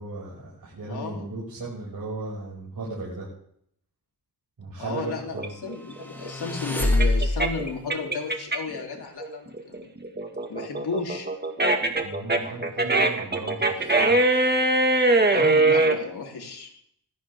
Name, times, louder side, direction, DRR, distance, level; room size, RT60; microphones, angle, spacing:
voice 1, 0.0-3.3 4.6-5.5 12.0-14.1, right 2 dB, 60° right, -6 dB, 7.1 m, -36 dB
voice 2, 0.9-1.3 4.8-9.9 10.5-11.3 15.3-16.7, left 4 dB, 80° left, 0 dB, 3.8 m, -34 dB
sound 1, 5.4-8.8 9.2-16.0, right 2 dB, 25° right, 2.1 m, -22 dB
sound 2, 6.0-7.7, left 2 dB, 5° left, 3.7 m, -25 dB
19.5 x 15.5 x 3.8 m, 0.68 s
wide cardioid pair, 90°, 38 cm